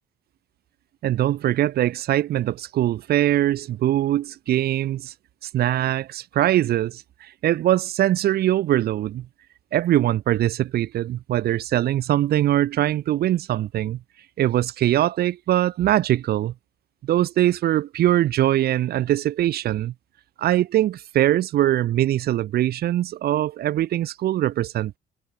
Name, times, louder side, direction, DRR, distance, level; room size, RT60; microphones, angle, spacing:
voice 1, 1.0-5.1 5.4-9.3 9.7-14.0 14.4-16.5 17.0-19.9 20.4-25.0, right 13 dB, 65° right, 5.8 m, -22 dB
cardioid pair, 110°, 17 cm